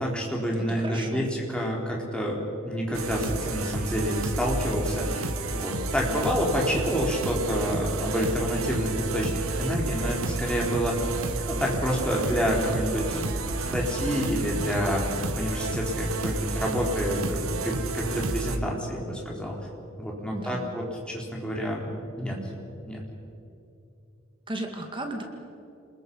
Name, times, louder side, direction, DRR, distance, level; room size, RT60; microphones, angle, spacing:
voice 1, 0.0-2.4 2.6-5.3 5.5-11.0 11.5-13.3 13.7-15.1 15.3-19.6 20.0-21.9 22.2-22.4 22.8-23.0, equal, 5° left, -2 dB, 4.1 m, -28 dB
voice 2, 0.7-1.3 20.3-20.7 24.5-25.2, right 1 dB, 25° right, 3 dB, 2.1 m, -35 dB
sound 1, 2.9-18.6, right 2 dB, 85° right, 1.6 m, -31 dB
28.5 x 21.0 x 5.6 m, 2.7 s
head